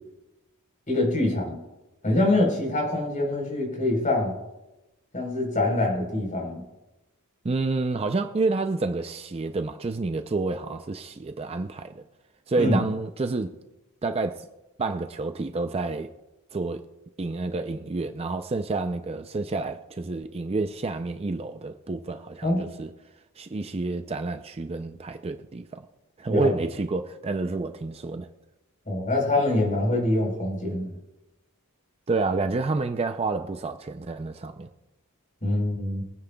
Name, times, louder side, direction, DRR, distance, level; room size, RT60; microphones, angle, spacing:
voice 1, 0.9-1.6 2.0-4.3 5.1-6.6 12.6-12.8 22.4-22.7 26.3-26.5 28.9-30.9 35.4-36.0, left 2 dB, 35° left, 4.1 m, -24 dB
voice 2, 7.4-12.0 12.5-13.5 14.0-14.5 14.8-16.1 16.5-16.8 17.2-22.9 23.4-25.8 26.2-28.3 32.1-34.7, right 3 dB, 25° right, 0.4 m, -29 dB
23.0 x 9.8 x 2.3 m
head